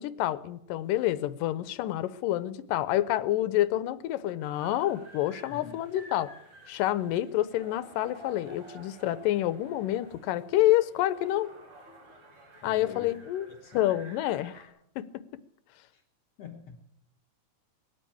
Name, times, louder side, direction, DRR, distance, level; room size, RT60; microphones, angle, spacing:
voice 1, 0.0-6.3 6.7-11.5 12.6-13.5 13.7-14.7 15.0-15.2, left 14 dB, 75° left, 14 dB, 2.3 m, -28 dB
sound 1, 4.4-14.7, right 1 dB, 40° right, 5.4 m, -52 dB
voice 2, 12.6-13.1 13.6-13.8 15.9-16.0 16.4-16.8, left 7 dB, 60° left, 4 dB, 1.8 m, -45 dB
20.5 x 8.2 x 8.6 m, 0.77 s
omnidirectional pair, 4.1 m